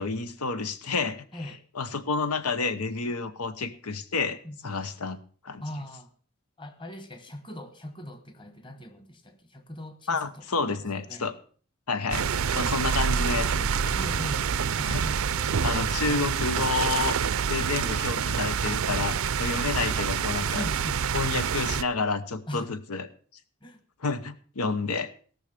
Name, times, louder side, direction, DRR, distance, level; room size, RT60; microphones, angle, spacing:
voice 1, 0.0-4.4 4.6-5.2 5.4-5.6 10.1-11.3 11.9-14.0 14.8-15.0 15.6-17.2 17.5-20.6 21.1-23.1 24.0-25.1, left 4 dB, 90° left, 12 dB, 1.0 m, -30 dB
voice 2, 5.6-6.1 6.6-11.3 13.9-14.5 14.8-15.6 20.5-21.1 22.5-22.7 23.6-23.8, left 1 dB, 20° left, 10 dB, 1.3 m, -40 dB
sound 1, 12.1-21.8, right 6 dB, 70° right, 0.5 m, -27 dB
17.5 x 6.4 x 6.8 m, 0.43 s
head